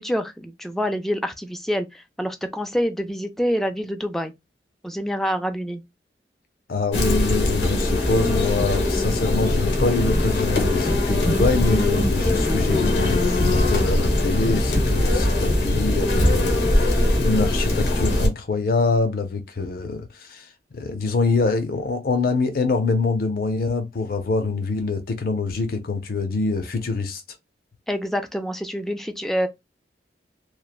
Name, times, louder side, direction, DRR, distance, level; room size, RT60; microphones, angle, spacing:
voice 1, 0.0-4.3 4.8-5.8 27.9-29.5, equal, ahead, 0.3 m, -26 dB
voice 2, 6.7-27.2, left 3 dB, 55° left, 0.5 m, -25 dB
sound 1, 6.9-18.3, left 1 dB, 80° left, 0.9 m, -21 dB
3.0 x 2.1 x 2.3 m
head